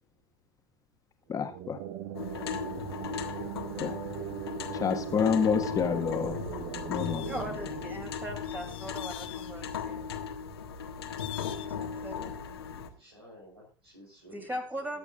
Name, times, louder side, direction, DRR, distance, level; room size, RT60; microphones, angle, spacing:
voice 1, 1.3-1.8 3.8-3.9 4.7-6.4 6.9-7.2, left 6 dB, 25° left, 6 dB, 1.6 m, -28 dB
sound 1, 1.3-8.9, right 10 dB, 50° right, 1.1 m, -40 dB
sound 2, 2.1-12.9, left 7 dB, 75° left, 1.5 m, -37 dB
sound 3, 6.9-7.5 8.4-9.5 11.2-11.7, left 13 dB, 40° left, 1.1 m, -45 dB
voice 2, 6.9-10.1 11.8-12.7 14.3-15.0, equal, 15° right, 2 dB, 3.0 m, -40 dB
voice 3, 12.9-15.0, equal, 85° right, -2 dB, 4.0 m, -53 dB
21.5 x 8.0 x 2.5 m, 0.33 s
figure-of-eight pair, 80°, 13 cm